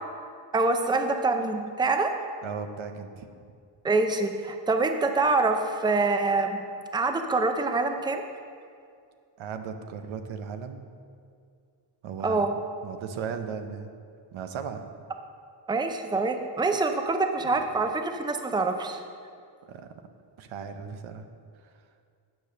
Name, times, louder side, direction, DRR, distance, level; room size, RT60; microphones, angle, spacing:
voice 1, 0.5-2.1 3.8-6.6 6.9-8.2 12.2-12.5 15.7-19.0, right 3 dB, 10° right, 6 dB, 0.5 m, -25 dB
voice 2, 2.4-3.3 9.4-10.9 12.0-12.5 12.8-13.9 14.3-14.8 19.7-19.8 20.4-21.2, right 6 dB, 90° right, 7 dB, 0.8 m, -36 dB
9.1 x 5.2 x 6.4 m, 2.3 s
cardioid pair, 110°, 46 cm